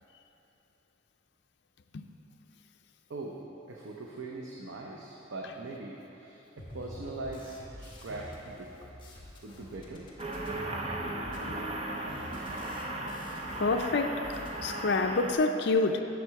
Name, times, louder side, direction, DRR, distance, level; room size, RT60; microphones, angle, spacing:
voice 1, 3.7-8.7 9.4-10.1, right 2 dB, 90° right, -1 dB, 0.7 m, -41 dB
sound 1, 6.6-13.9 14.1-14.6, left 1 dB, 25° left, 1.3 m, -47 dB
sound 2, 10.2-15.3, right 2 dB, 30° right, 0.6 m, -36 dB
voice 2, 13.6-16.0, left 3 dB, 60° left, 6 dB, 0.5 m, -27 dB
9.3 x 6.6 x 4.7 m, 3.0 s
head